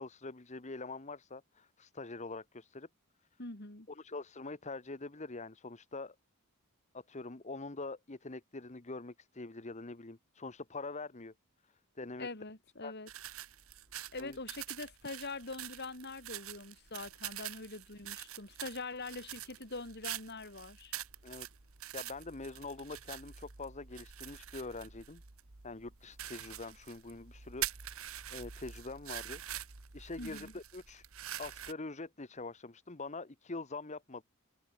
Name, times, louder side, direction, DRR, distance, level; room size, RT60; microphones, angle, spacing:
voice 1, 0.0-2.9 3.9-6.1 6.9-11.3 11.6-12.3 12.8-12.9 14.2-14.4 21.2-21.5 21.9-25.2 25.6-29.4 29.9-31.1 31.4-34.2, left 3 dB, 30° left, 1.1 m, -44 dB
voice 2, 3.4-3.9 12.2-13.1 14.1-20.9 30.2-30.5, left 3 dB, 50° left, 3.4 m, -44 dB
sound 1, 13.1-31.7, right 11 dB, 70° right, 1.7 m, -45 dB
head